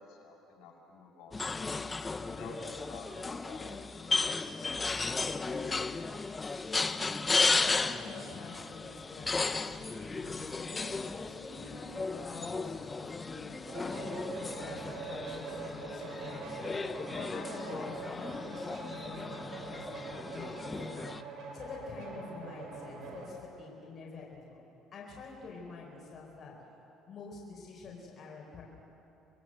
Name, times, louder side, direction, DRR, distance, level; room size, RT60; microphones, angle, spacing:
voice 1, 0.0-1.4 2.3-5.6, left 2 dB, 70° left, -1 dB, 6.3 m, -51 dB
sound 1, 1.3-21.2, left 3 dB, 20° left, 0.7 m, -35 dB
voice 2, 7.5-13.5 13.8-21.1 21.5-24.6 24.9-26.5 27.1-28.6, left 4 dB, 40° left, -3 dB, 4.6 m, -47 dB
sound 2, 13.7-23.3, right 4 dB, 60° right, 7.2 m, -44 dB
26.0 x 22.5 x 7.9 m, 2.9 s
cardioid pair, 130°, 0 cm